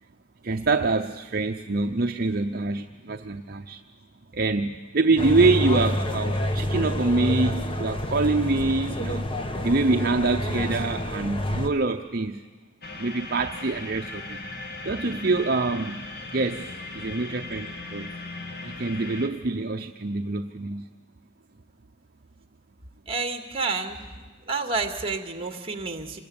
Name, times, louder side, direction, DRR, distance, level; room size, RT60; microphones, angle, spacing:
voice 1, 0.4-3.8 4.3-9.3 9.6-12.4 13.0-14.4 14.8-16.1 16.3-18.1 18.6-20.9, right 3 dB, 45° right, 5 dB, 0.7 m, -25 dB
sound 1, 5.2-11.7, left 1 dB, 25° left, 1.3 m, -28 dB
sound 2, 12.8-19.3, left 2 dB, 50° left, 2.3 m, -38 dB
voice 2, 23.1-24.0 24.5-26.2, right 4 dB, 25° right, 6 dB, 2.1 m, -29 dB
27.0 x 21.0 x 8.7 m, 1.3 s
head